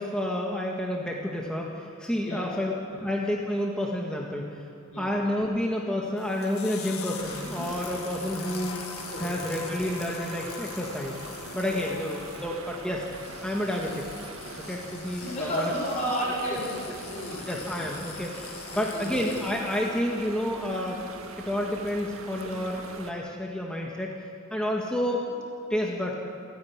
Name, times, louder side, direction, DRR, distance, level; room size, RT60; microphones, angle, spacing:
voice 1, 0.0-4.5 5.0-8.8 9.2-11.2 11.5-13.0 13.4-14.0 14.7-15.7 16.5-16.6 16.9-17.0 17.5-21.1 21.4-24.1 24.5-25.4 25.7-26.1, left 1 dB, 5° left, -2 dB, 1.7 m, -30 dB
sound 1, 6.2-20.0, left 7 dB, 80° left, 1.9 m, -43 dB
sound 2, 7.2-23.1, right 2 dB, 70° right, 1.9 m, -42 dB
voice 2, 15.2-17.5 18.7-19.1, equal, 35° left, -6 dB, 6.7 m, -31 dB
28.0 x 10.5 x 9.6 m, 2.6 s
head